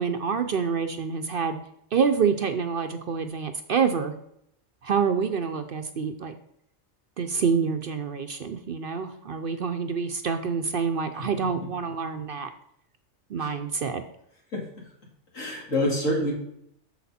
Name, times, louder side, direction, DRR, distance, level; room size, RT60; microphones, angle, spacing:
voice 1, 0.0-1.6 1.9-4.1 4.8-6.3 7.2-12.5 13.3-14.0, right 6 dB, 55° right, 8 dB, 0.7 m, -27 dB
voice 2, 15.3-16.3, left 1 dB, 85° left, -2 dB, 2.9 m, -26 dB
8.2 x 6.6 x 4.2 m, 0.73 s
omnidirectional pair, 1.3 m